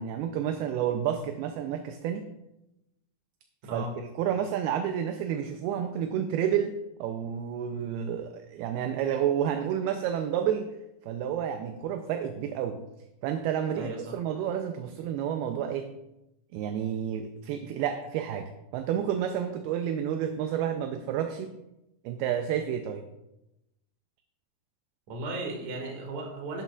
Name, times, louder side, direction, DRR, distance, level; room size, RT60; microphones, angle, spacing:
voice 1, 0.0-2.3 3.7-10.7 11.0-12.8 13.2-15.9 16.5-21.6 22.1-23.0, right 9 dB, 80° right, 6 dB, 2.4 m, -30 dB
voice 2, 13.8-14.1 25.1-26.6, right 2 dB, 50° right, 0 dB, 2.9 m, -35 dB
11.5 x 11.0 x 2.4 m, 0.91 s
omnidirectional pair, 4.8 m